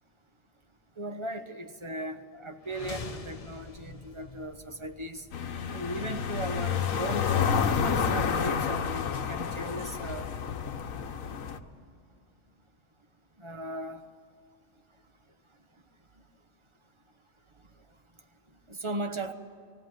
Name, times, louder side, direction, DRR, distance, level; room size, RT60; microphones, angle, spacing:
voice 1, 1.0-5.3 5.7-7.3 7.8-10.3 13.4-14.0 18.7-19.3, right 1 dB, 25° right, 7 dB, 1.0 m, -37 dB
sound 1, 2.6-6.6, left 4 dB, 30° left, 0.9 m, -45 dB
sound 2, 5.3-11.6, left 6 dB, 85° left, 1.4 m, -29 dB
19.0 x 17.0 x 9.3 m, 2.3 s
omnidirectional pair, 1.4 m